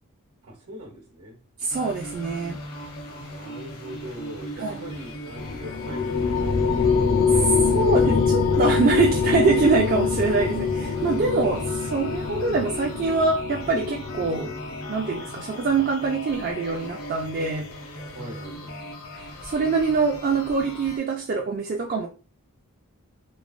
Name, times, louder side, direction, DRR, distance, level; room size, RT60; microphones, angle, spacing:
voice 1, 0.4-1.4 3.0-6.7 18.1-18.9, equal, 75° right, 1.0 m, -41 dB
voice 2, 1.6-2.6 4.6-4.8 6.9-7.0 7.3-14.5 14.9-17.7 19.2-22.1, right 4 dB, 40° right, 0.3 m, -24 dB
sound 1, 1.7-21.0, equal, 70° left, 0.8 m, -38 dB
sound 2, 5.4-15.1, left 5 dB, 45° left, 0.4 m, -24 dB
3.1 x 2.0 x 2.4 m
head